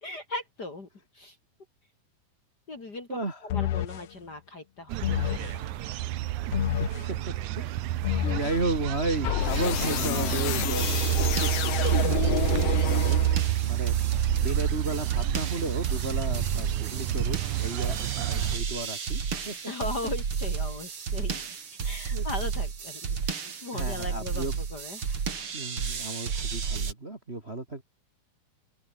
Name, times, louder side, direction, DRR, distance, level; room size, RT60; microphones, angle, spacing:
voice 1, 0.0-0.9 1.1-1.4 2.7-5.0 5.2-5.7 19.7-21.4 21.8-25.2, left 2 dB, 30° left, 2.7 m, -38 dB
voice 2, 3.1-3.5 6.8-7.2 7.6-7.7 8.2-10.9 11.2-14.0 14.4-19.5 22.1-22.3 23.7-24.5 25.5-27.8, right 2 dB, 20° right, 2.1 m, -34 dB
sound 1, 3.5-4.1 5.0-5.6 6.5-7.1 8.0-8.6 9.2-13.6, left 13 dB, 85° left, 1.3 m, -29 dB
sound 2, 4.9-18.6, right 15 dB, 70° right, 2.0 m, -29 dB
sound 3, 10.8-26.9, right 6 dB, 40° right, 3.2 m, -32 dB
open air
omnidirectional pair, 4.1 m